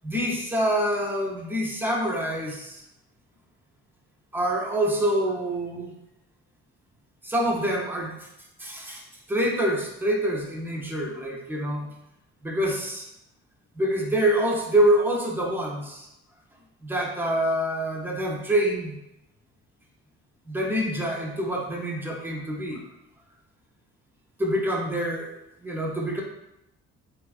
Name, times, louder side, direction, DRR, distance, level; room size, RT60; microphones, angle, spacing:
voice 1, 0.0-2.8 4.3-5.9 7.2-8.3 8.6-9.0 9.3-11.9 12.4-13.1 13.8-16.1 16.8-19.0 20.5-22.8 24.4-25.3 25.6-26.2, right 1 dB, 5° right, -1 dB, 0.6 m, -26 dB
3.1 x 2.3 x 2.3 m, 0.87 s
cardioid pair, 90°, 30 cm